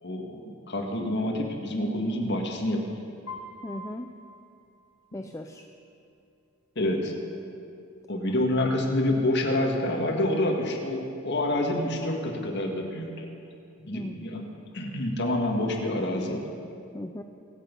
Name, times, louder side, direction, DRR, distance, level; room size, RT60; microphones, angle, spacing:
voice 1, 0.0-2.9 6.8-7.2 8.1-13.3 13.8-16.5, left 1 dB, 50° left, 1 dB, 1.8 m, -27 dB
Piano, 3.3-5.3, left 2 dB, 75° left, 3.6 m, -44 dB
voice 2, 3.6-4.1 5.1-5.7 13.9-14.3 16.9-17.2, left 1 dB, 15° left, 5 dB, 0.4 m, -37 dB
24.0 x 8.4 x 5.4 m, 2.6 s
head